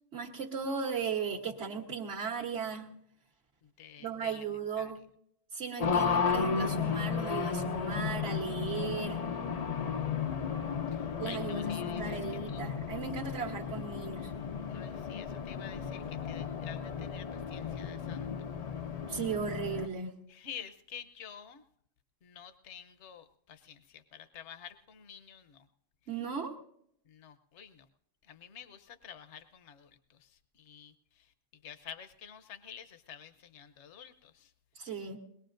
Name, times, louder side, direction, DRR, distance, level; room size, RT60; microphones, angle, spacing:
voice 1, 0.1-2.9 4.0-5.0 5.5-9.3 11.2-11.6 12.0-14.3 19.1-20.1 26.1-26.5 34.7-35.2, right 6 dB, 60° right, -1 dB, 1.5 m, -36 dB
voice 2, 3.6-4.4 4.8-4.9 10.2-12.6 14.7-18.3 20.3-21.6 22.2-25.7 27.0-27.9 28.2-31.3 31.6-34.5, left 8 dB, 65° left, 10 dB, 1.1 m, -50 dB
Race car auto racing, 5.8-19.9, left 6 dB, 45° left, 0.5 m, -34 dB
22.5 x 20.5 x 2.6 m, 0.73 s
omnidirectional pair, 1.3 m